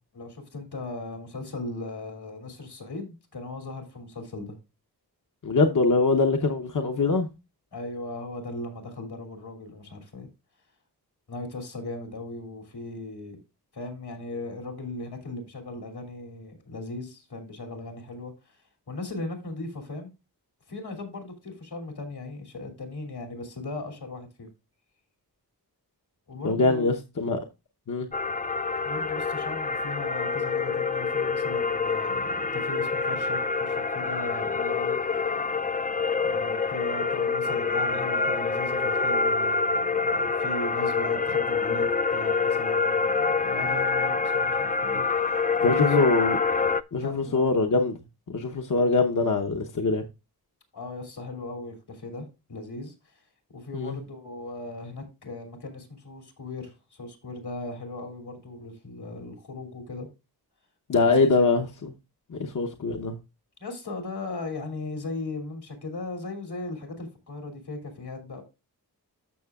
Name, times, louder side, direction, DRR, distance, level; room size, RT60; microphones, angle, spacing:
voice 1, 0.1-4.6 7.7-10.3 11.3-13.4 13.7-18.6 18.9-20.1 20.7-24.5 26.3-26.9 28.8-34.9 36.2-41.9 42.1-46.1 47.0-47.5 50.7-53.1 53.5-60.1 60.9-61.5 63.6-68.4, left 2 dB, 75° left, 2.8 m, -38 dB
voice 2, 5.4-7.3 26.4-27.4 27.9-28.1 45.6-46.4 46.9-48.0 48.3-50.0 53.7-54.0 60.9-61.7 62.3-63.2, left 3 dB, 50° left, 0.9 m, -23 dB
sound 1, 28.1-46.8, left 4 dB, 25° left, 0.3 m, -26 dB
13.5 x 6.0 x 2.3 m
wide cardioid pair, 100°, 39 cm